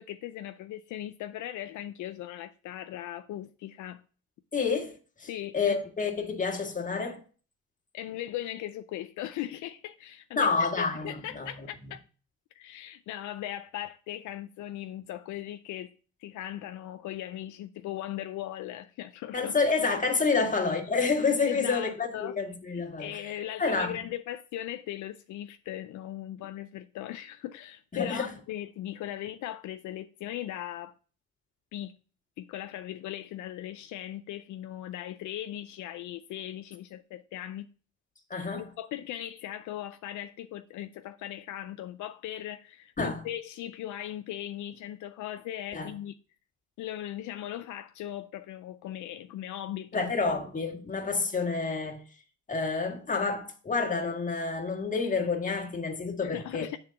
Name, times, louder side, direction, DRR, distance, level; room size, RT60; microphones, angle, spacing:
voice 1, 0.0-4.0 5.3-5.8 7.9-10.5 10.8-12.0 12.6-15.9 16.2-19.6 20.4-20.5 21.5-22.3 22.7-30.9 31.7-31.9 32.4-37.7 38.5-46.1 46.8-50.1 56.2-56.8, left 12 dB, 75° left, 0.5 m, -38 dB
voice 2, 4.5-7.2 10.4-11.5 19.3-23.2 23.6-24.0 27.9-28.3 38.3-38.7 43.0-43.2 45.7-45.9 49.9-52.0 52.5-56.7, left 4 dB, 25° left, 1.6 m, -29 dB
7.1 x 3.8 x 5.6 m
cardioid pair, 90°, 30 cm